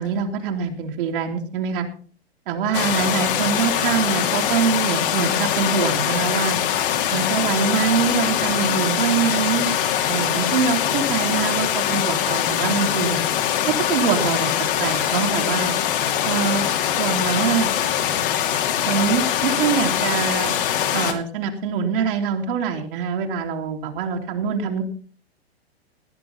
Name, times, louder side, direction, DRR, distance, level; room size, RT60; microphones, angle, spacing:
voice 1, 0.0-1.9 2.5-6.6 7.1-9.7 10.1-13.2 13.9-14.5 14.8-15.7 16.2-16.7 17.0-17.7 18.8-20.5 20.9-24.8, right 6 dB, 55° right, 1 dB, 3.0 m, -24 dB
sound 1, 2.7-21.1, left 10 dB, 55° left, 2.8 m, -22 dB
18.5 x 10.0 x 4.2 m, 0.43 s
hypercardioid pair, 115°, 32 cm